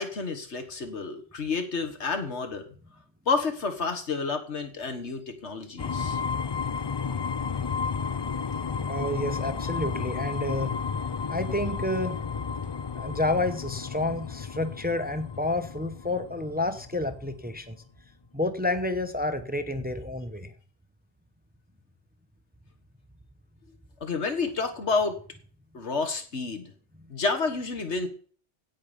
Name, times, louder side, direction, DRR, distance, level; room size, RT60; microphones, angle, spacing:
voice 1, 0.0-2.7 3.3-6.2 24.0-25.2 25.7-26.7 27.1-28.1, left 4 dB, 80° left, 6 dB, 1.9 m, -30 dB
sound 1, 5.8-17.6, left 6 dB, 35° left, 0.4 m, -32 dB
voice 2, 8.9-10.8 11.3-12.2 12.9-17.8 18.3-20.5, left 2 dB, 10° right, 9 dB, 0.8 m, -29 dB
16.5 x 5.9 x 5.3 m, 0.43 s
omnidirectional pair, 1.2 m